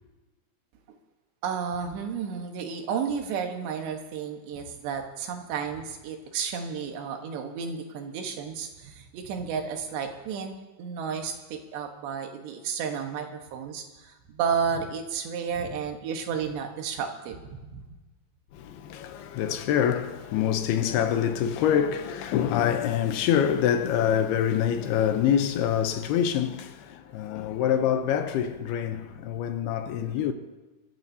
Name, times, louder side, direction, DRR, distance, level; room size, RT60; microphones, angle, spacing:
voice 1, 1.4-17.8, right 6 dB, 85° right, 3.5 m, -32 dB
voice 2, 18.5-30.3, left 9 dB, 80° left, 2.6 m, -25 dB
25.0 x 14.0 x 2.7 m
omnidirectional pair, 4.8 m